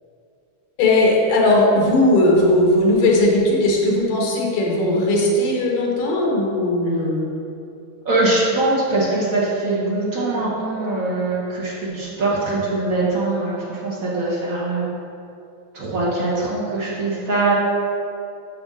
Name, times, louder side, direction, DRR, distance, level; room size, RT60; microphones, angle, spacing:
voice 1, 0.8-7.3, left 1 dB, 85° left, -2 dB, 2.8 m, -18 dB
voice 2, 8.0-14.9 15.7-17.5, right 2 dB, 65° right, -7 dB, 0.8 m, -22 dB
8.8 x 5.5 x 3.7 m, 2.6 s
omnidirectional pair, 3.5 m